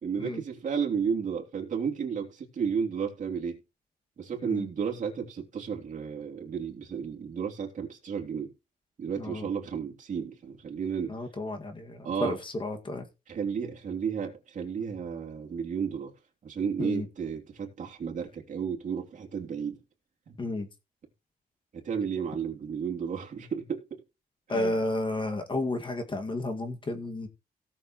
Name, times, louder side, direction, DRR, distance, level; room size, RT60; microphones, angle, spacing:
voice 1, 0.0-3.6 4.2-8.5 9.0-11.2 12.0-12.4 13.3-16.1 16.4-19.8 20.3-20.4 21.7-24.0 24.5-24.8, right 6 dB, 50° right, 3.2 m, -33 dB
voice 2, 9.2-9.5 11.1-13.1 16.8-17.1 20.4-20.7 24.5-27.3, left 2 dB, 30° left, 2.1 m, -32 dB
17.5 x 7.0 x 3.1 m
cardioid pair, 100°, 16 cm